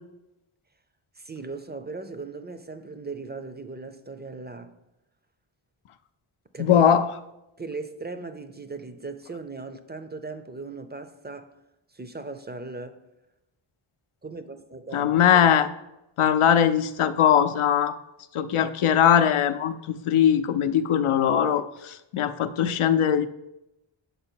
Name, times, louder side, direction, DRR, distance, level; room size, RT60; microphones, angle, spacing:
voice 1, 1.2-4.8 6.5-6.8 7.6-11.5 11.9-13.0 14.2-15.5, right 3 dB, 20° right, 0.4 m, -38 dB
voice 2, 6.6-7.1 14.9-15.7 16.2-17.9 18.3-23.3, left 9 dB, 75° left, 0.6 m, -21 dB
6.8 x 4.5 x 4.4 m
wide cardioid pair, 70°, 50 cm